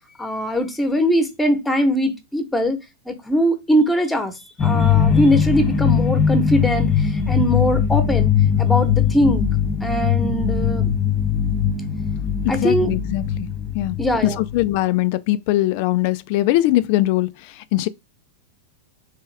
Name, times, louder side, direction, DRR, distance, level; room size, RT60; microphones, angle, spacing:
voice 1, 0.2-2.8 3.1-4.3 4.6-8.3 8.6-9.4 9.8-10.9 12.5-12.9 14.0-14.4, equal, 5° left, 1.0 m, -21 dB
sound 1, 4.6-14.8, left 8 dB, 25° left, 0.7 m, -20 dB
voice 2, 12.6-13.5 13.7-14.0 14.2-17.3 17.7-17.9, left 16 dB, 55° left, 0.3 m, -20 dB
3.5 x 3.2 x 3.3 m
hypercardioid pair, 110°, 0 cm